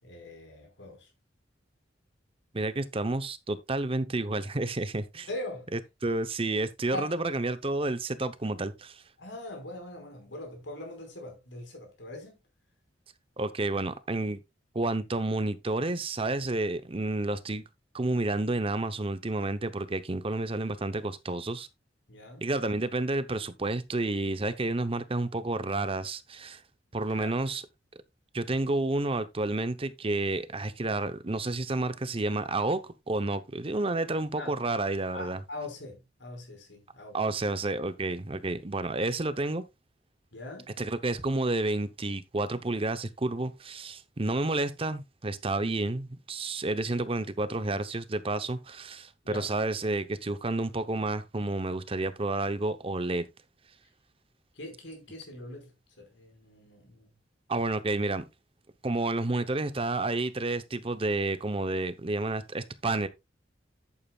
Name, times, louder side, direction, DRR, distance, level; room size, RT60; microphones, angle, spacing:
voice 1, 0.0-1.1 5.3-5.7 6.9-7.1 9.2-12.4 22.1-22.4 27.2-27.4 34.4-34.6 35.1-37.2 40.3-40.7 49.2-49.5 54.5-57.1, left 2 dB, 80° left, 4.9 m, -42 dB
voice 2, 2.5-5.3 5.7-9.0 13.4-14.4 14.7-17.6 17.9-21.7 22.4-26.6 26.9-27.6 28.3-35.4 37.1-39.6 40.8-53.2 57.5-58.2 58.8-63.1, right 2 dB, 30° right, 0.8 m, -30 dB
11.5 x 8.6 x 2.4 m
head